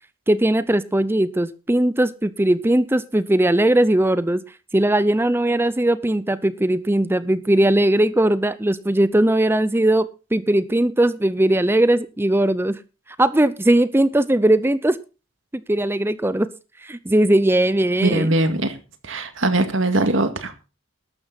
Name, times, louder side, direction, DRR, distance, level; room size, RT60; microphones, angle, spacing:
voice 1, 0.3-4.4 4.7-12.8 13.2-15.0 15.5-16.5 16.8-18.3, right 1 dB, 10° right, 15 dB, 0.5 m, -19 dB
voice 2, 18.0-18.8 19.0-20.7, right 2 dB, 65° right, 8 dB, 2.1 m, -21 dB
13.5 x 12.0 x 4.0 m, 0.31 s
head